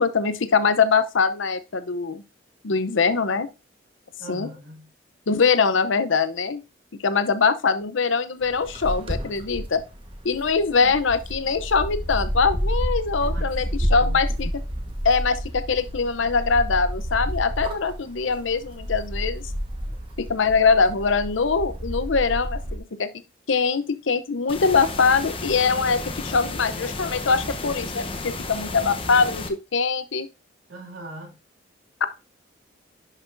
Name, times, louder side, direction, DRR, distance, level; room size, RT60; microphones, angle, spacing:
voice 1, 0.0-2.2 2.6-3.5 4.3-4.5 5.3-6.6 7.0-9.8 10.2-14.5 15.0-19.4 20.2-23.1 23.5-30.3 32.0-32.1, left 5 dB, 75° left, 0.7 m, -22 dB
voice 2, 4.2-4.9 10.8-11.0 13.2-14.2 30.7-31.4, right 1 dB, 90° right, 2.5 m, -41 dB
sound 1, 8.4-22.8, equal, 25° right, 1.2 m, -30 dB
sound 2, 24.5-29.5, left 3 dB, 25° left, 0.8 m, -33 dB
10.5 x 5.9 x 2.6 m
head